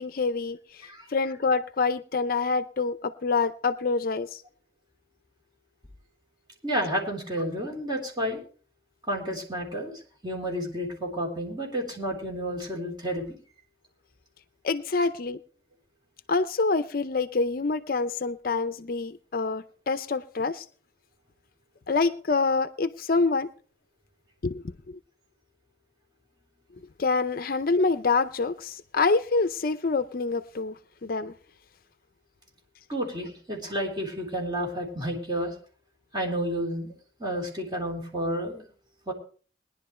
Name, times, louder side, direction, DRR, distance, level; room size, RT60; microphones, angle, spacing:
voice 1, 0.0-4.4 14.6-15.4 16.3-20.7 21.9-23.5 24.4-25.0 27.0-31.3, left 4 dB, 50° left, 12 dB, 0.5 m, -26 dB
voice 2, 6.6-8.4 9.1-13.3 32.9-35.5 36.1-36.9 37.2-38.7 39.1-39.2, equal, 25° right, -1 dB, 3.7 m, -31 dB
21.0 x 10.5 x 3.2 m, 0.40 s
head